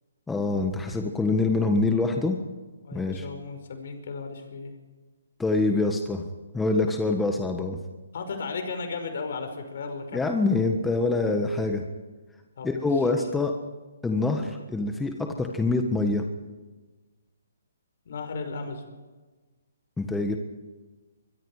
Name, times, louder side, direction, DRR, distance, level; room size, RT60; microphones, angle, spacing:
voice 1, 0.3-2.4 2.9-3.3 5.4-6.2 6.5-7.8 10.1-11.8 12.6-13.5 14.0-16.2 20.0-20.4, left 3 dB, 5° left, 3 dB, 1.4 m, -25 dB
voice 2, 2.8-4.7 8.1-10.2 12.6-13.0 18.1-18.9, left 4 dB, 60° left, 6 dB, 5.3 m, -35 dB
23.5 x 23.0 x 5.0 m, 1.3 s
hypercardioid pair, 150°, 0 cm